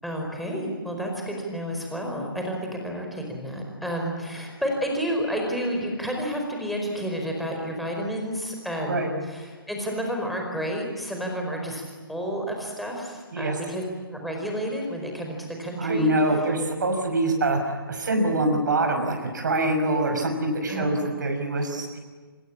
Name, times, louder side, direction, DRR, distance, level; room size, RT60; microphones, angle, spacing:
voice 1, 0.0-13.8 14.1-16.1 20.7-21.0, equal, ahead, 0 dB, 4.8 m, -30 dB
voice 2, 15.8-22.0, right 2 dB, 55° right, 4 dB, 5.9 m, -24 dB
26.5 x 25.5 x 8.7 m, 1.4 s
figure-of-eight pair, 140°, 12 cm